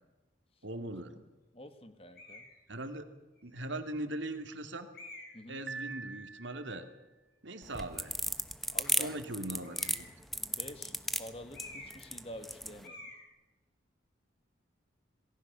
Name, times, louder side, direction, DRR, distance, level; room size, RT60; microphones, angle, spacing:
voice 1, 0.6-1.2 2.7-3.1 3.4-4.9 5.5-6.9 7.4-8.1 9.0-10.1, right 1 dB, 75° right, 7 dB, 2.7 m, -40 dB
voice 2, 1.5-2.5 5.3-5.6 8.7-9.1 10.3-13.1, left 1 dB, 30° left, 8 dB, 2.3 m, -48 dB
sound 1, 2.1-2.5 3.4-3.5 4.9-5.5 9.6-10.2 11.5-12.1 12.4-12.5 12.8-13.2, left 2 dB, 50° left, 7.4 m, -49 dB
Piano, 5.7-7.0, right 4 dB, 55° right, 1.5 m, -44 dB
sound 2, 7.6-12.8, equal, ahead, 1.0 m, -34 dB
27.5 x 19.5 x 7.0 m, 1.1 s
head